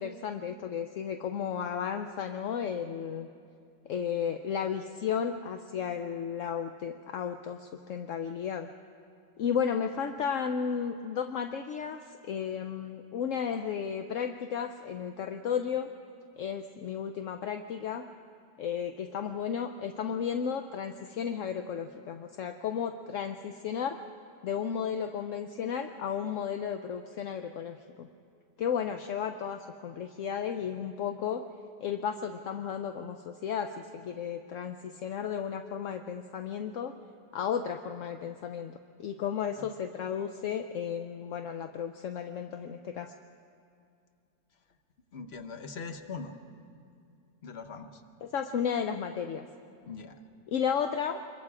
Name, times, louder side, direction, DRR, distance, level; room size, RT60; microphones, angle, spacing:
voice 1, 0.0-3.3 3.9-8.7 9.4-15.9 16.4-18.1 18.6-24.0 24.4-28.1 28.6-31.4 31.8-36.9 37.3-43.1 48.2-49.5 50.5-51.2, left 7 dB, 60° left, 6 dB, 0.8 m, -33 dB
voice 2, 45.1-46.3 47.4-48.0 49.8-50.2, left 4 dB, 45° left, 7 dB, 1.1 m, -41 dB
26.0 x 22.5 x 4.9 m, 2.4 s
omnidirectional pair, 1.8 m